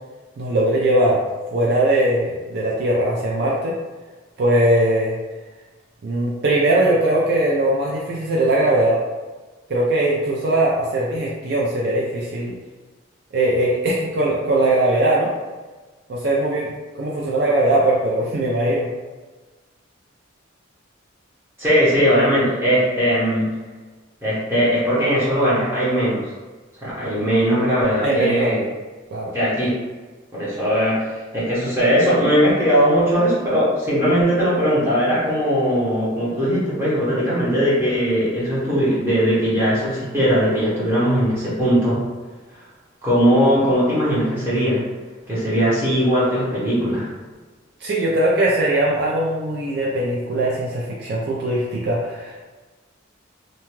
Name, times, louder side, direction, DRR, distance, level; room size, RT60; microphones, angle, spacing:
voice 1, 0.4-1.2 1.5-3.8 4.4-5.2 6.0-9.0 9.7-12.6 13.3-15.3 16.1-18.9 28.0-28.6 29.1-29.3 47.8-52.4, right 1 dB, 55° right, -4 dB, 0.4 m, -20 dB
voice 2, 21.6-23.5 24.2-26.2 26.8-28.6 29.3-29.7 30.3-42.0 43.0-44.8 45.3-47.1, equal, 10° right, -10 dB, 0.9 m, -19 dB
2.7 x 2.2 x 3.0 m, 1.3 s
head